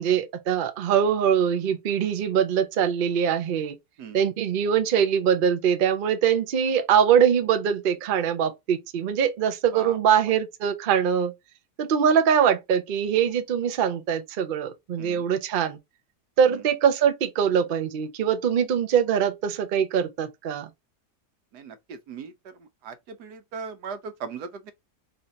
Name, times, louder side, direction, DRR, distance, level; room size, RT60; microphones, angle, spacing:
voice 1, 0.0-3.7 4.1-11.3 11.8-15.8 16.4-20.7, right 8 dB, 55° right, 0.6 m, -23 dB
voice 2, 9.7-10.2 15.0-15.3 16.5-16.6 21.5-24.7, right 6 dB, 85° right, 1.4 m, -39 dB
4.4 x 2.6 x 4.1 m
omnidirectional pair, 1.7 m